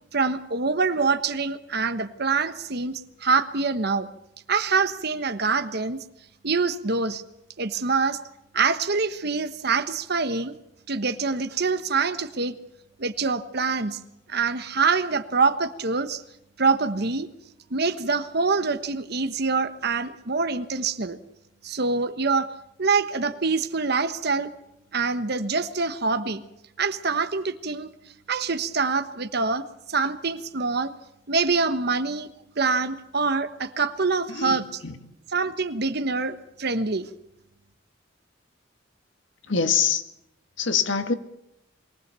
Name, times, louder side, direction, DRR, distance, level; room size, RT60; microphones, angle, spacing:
voice 1, 0.1-4.1 4.5-6.0 6.4-7.2 7.6-8.2 8.5-10.5 10.9-12.6 13.0-14.0 14.3-16.2 16.6-17.3 17.7-21.2 21.6-22.5 22.8-24.5 24.9-26.4 26.8-27.9 28.3-30.9 31.3-32.3 32.6-34.8 35.3-37.1, right 4 dB, 60° right, 11 dB, 1.3 m, -25 dB
voice 2, 34.3-34.9 39.5-40.0 40.6-41.1, left 6 dB, 80° left, 8 dB, 1.7 m, -24 dB
23.0 x 18.5 x 6.9 m, 0.83 s
head